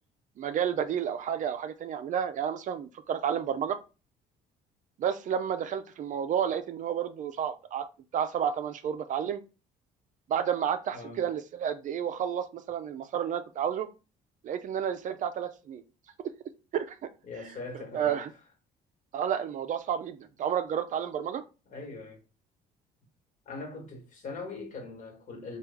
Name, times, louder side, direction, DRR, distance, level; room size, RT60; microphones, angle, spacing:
voice 1, 0.4-3.8 5.0-7.9 8.1-9.4 10.3-13.9 14.4-15.8 16.7-16.9 17.9-18.3 19.1-21.4, right 8 dB, 50° right, 0.4 m, -31 dB
voice 2, 10.9-11.3 17.2-18.2 21.7-22.2 23.4-25.6, left 3 dB, 50° left, 1.4 m, -41 dB
3.1 x 2.3 x 3.4 m
cardioid pair, 110°, 17 cm